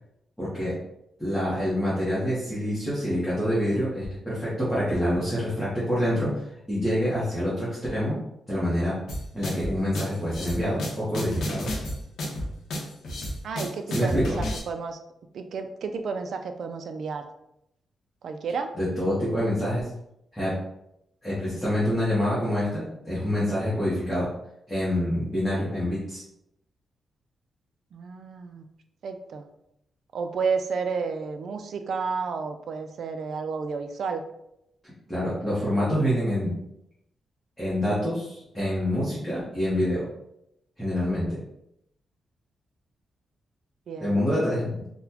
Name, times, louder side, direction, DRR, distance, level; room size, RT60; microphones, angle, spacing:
voice 1, 0.4-0.8 1.2-8.2 8.5-9.0 9.3-11.7 13.9-14.3 18.8-19.9 20.3-20.5 21.2-24.3 24.7-26.2 35.1-36.5 37.6-40.0 40.8-41.4 44.0-44.7, equal, 5° left, -10 dB, 0.9 m, -26 dB
sound 1, 9.1-14.6, equal, 75° left, 0.7 m, -31 dB
voice 2, 13.4-15.0 15.3-17.3 18.2-18.7 27.9-28.6 29.0-29.5 30.1-34.2 43.9-44.2, right 5 dB, 55° right, 7 dB, 0.3 m, -31 dB
3.9 x 2.1 x 2.8 m, 0.80 s
wide cardioid pair, 180°, 0 cm